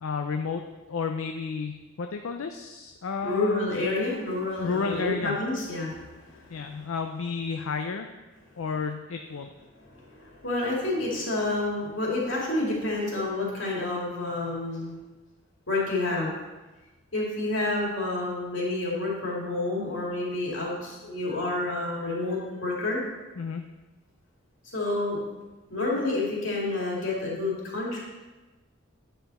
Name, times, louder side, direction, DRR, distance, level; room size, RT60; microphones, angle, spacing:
voice 1, 0.0-0.6 0.9-3.8 4.6-5.4 6.5-8.1 8.6-9.5 23.4-23.7, left 5 dB, 85° left, 5 dB, 0.5 m, -31 dB
voice 2, 3.2-5.9 6.2-6.6 9.8-15.0 15.7-16.3 17.1-23.0 24.7-25.2 25.7-28.0, left 2 dB, 65° left, -4 dB, 2.5 m, -29 dB
9.3 x 5.7 x 4.2 m, 1.1 s
head